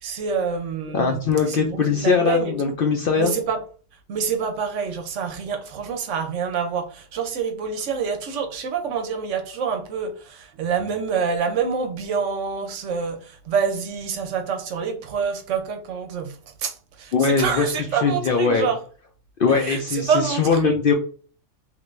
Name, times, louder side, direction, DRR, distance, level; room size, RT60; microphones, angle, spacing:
voice 1, 0.0-2.8 3.2-3.6 4.1-18.8 19.6-20.8, right 6 dB, 70° right, 0.9 m, -27 dB
voice 2, 0.9-3.3 17.1-17.7 18.0-18.7 19.4-20.9, left 5 dB, 60° left, 0.6 m, -20 dB
3.2 x 2.5 x 3.1 m
omnidirectional pair, 1.4 m